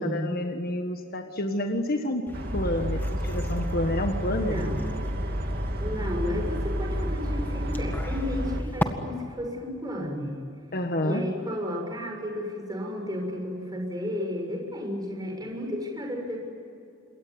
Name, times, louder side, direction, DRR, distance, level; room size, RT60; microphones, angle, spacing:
voice 1, 0.0-2.3 2.5-4.6 6.0-6.1 10.7-11.2, left 1 dB, 50° left, 5 dB, 1.6 m, -29 dB
sound 1, 2.3-8.9, left 1 dB, 10° left, 1.8 m, -38 dB
sound 2, 2.3-8.6, equal, 50° right, 2.6 m, -30 dB
voice 2, 4.4-4.9 5.8-10.4 11.0-16.4, left 1 dB, 20° right, 1 dB, 6.7 m, -32 dB
27.5 x 22.5 x 9.6 m, 2.5 s
head